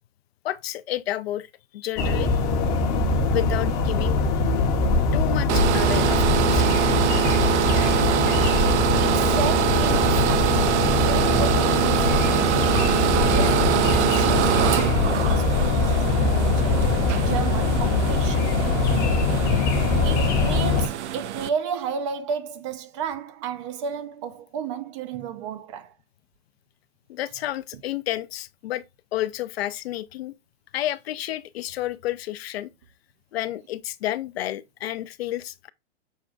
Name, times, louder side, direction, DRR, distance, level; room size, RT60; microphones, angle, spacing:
voice 1, 0.4-1.5 1.7-2.4 3.3-4.2 5.1-6.7 27.1-28.8 29.1-30.3 30.7-32.7 33.3-35.7, left 14 dB, 60° left, 0.5 m, -30 dB
sound 1, 2.0-20.9, left 3 dB, 25° left, 0.8 m, -22 dB
sound 2, 5.5-21.5, right 12 dB, 75° right, 0.6 m, -24 dB
voice 2, 8.4-8.8 9.0-16.9 17.2-18.5 20.0-25.9, right 7 dB, 25° right, 0.4 m, -33 dB
6.3 x 2.3 x 3.6 m
hypercardioid pair, 135°, 35 cm